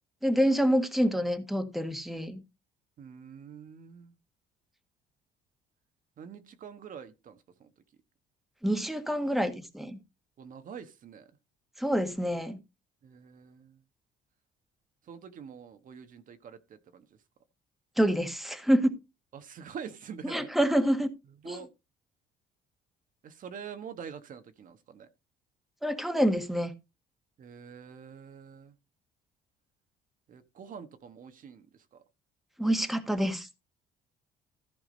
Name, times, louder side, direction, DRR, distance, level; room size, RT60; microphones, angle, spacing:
voice 1, 0.2-2.4 8.6-10.0 11.8-12.6 18.0-18.9 20.2-21.1 21.4-21.6 25.8-26.7 32.6-33.5, equal, ahead, 1.5 m, -27 dB
voice 2, 3.0-4.2 6.2-7.7 10.4-11.3 13.0-13.8 15.1-17.1 19.3-20.5 21.4-21.7 23.2-25.1 27.4-28.7 30.3-31.7 31.9-32.0, right 7 dB, 50° right, 1.3 m, -45 dB
14.5 x 4.9 x 5.1 m
cardioid pair, 110°, 17 cm